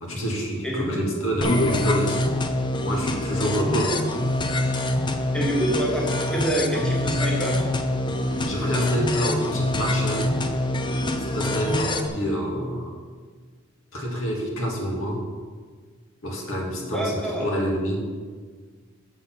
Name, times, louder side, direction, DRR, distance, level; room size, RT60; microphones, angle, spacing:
voice 1, 0.0-2.2 2.8-4.0 8.5-10.4 11.3-12.9 13.9-15.2 16.2-18.1, equal, 75° left, -1 dB, 1.8 m, -27 dB
voice 2, 0.6-1.1 5.3-7.6 16.8-17.5, equal, 5° left, -3 dB, 1.5 m, -27 dB
sound 1, 1.4-12.1, left 1 dB, 20° left, 0.5 m, -25 dB
7.0 x 6.2 x 5.8 m, 1.5 s
head